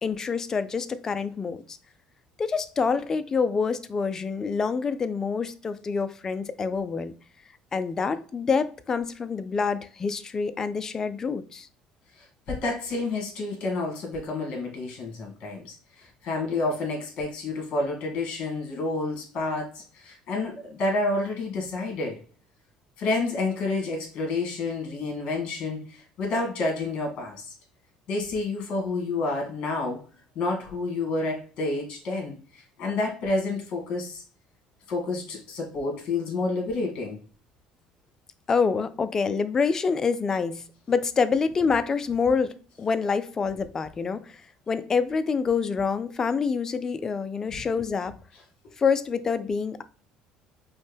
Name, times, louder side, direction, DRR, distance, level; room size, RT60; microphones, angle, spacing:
voice 1, 0.0-1.8 2.4-7.1 7.7-11.7 38.5-44.4 44.7-48.2 48.8-49.8, left 5 dB, 25° left, 0.4 m, -26 dB
voice 2, 12.2-22.2 23.0-27.5 28.1-30.0 30.4-34.2 34.9-37.2 47.5-47.6, left 3 dB, 55° left, 1.9 m, -29 dB
5.3 x 2.2 x 3.4 m
cardioid pair, 125°, 2 cm